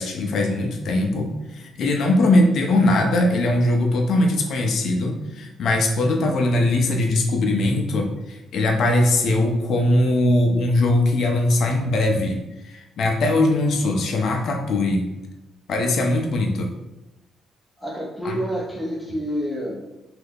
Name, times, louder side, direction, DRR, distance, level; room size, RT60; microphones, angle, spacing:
voice 1, 0.0-15.1 15.7-16.7 18.2-18.4, left 2 dB, 65° left, 2 dB, 0.5 m, -21 dB
voice 2, 17.8-19.8, equal, ahead, -4 dB, 0.7 m, -29 dB
2.8 x 2.3 x 3.5 m, 0.97 s
cardioid pair, 90°, 0 cm